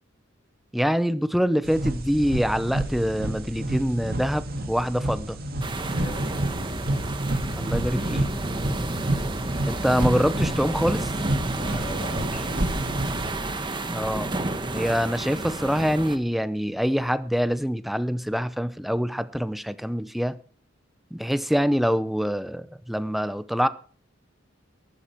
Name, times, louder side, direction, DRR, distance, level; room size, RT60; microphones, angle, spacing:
voice 1, 0.7-5.4 7.5-8.3 9.6-11.1 13.9-14.3 14.7-20.4 21.1-23.7, equal, ahead, 0.7 m, -25 dB
sound 1, 1.6-13.3, right 1 dB, 50° right, 2.1 m, -29 dB
sound 2, 5.6-16.2, right 2 dB, 25° right, 1.2 m, -31 dB
voice 2, 5.9-6.7 11.6-13.0, equal, 50° left, 7.6 m, -38 dB
13.5 x 12.0 x 4.5 m
head